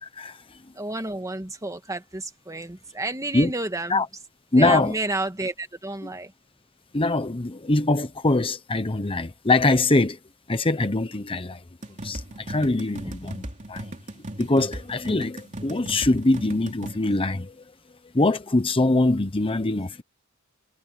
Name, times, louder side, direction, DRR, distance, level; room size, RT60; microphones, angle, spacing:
voice 1, 0.0-0.6 3.3-3.5 3.9-4.1 4.5-4.9 6.9-10.2 10.5-11.6 12.0-13.4 13.7-13.9 14.4-17.5 18.1-20.0, left 2 dB, 25° left, 0.9 m, -23 dB
voice 2, 0.7-4.0 4.5-6.3, right 2 dB, 15° right, 1.6 m, -30 dB
sound 1, 11.8-17.0, right 1 dB, 35° right, 2.9 m, -37 dB
head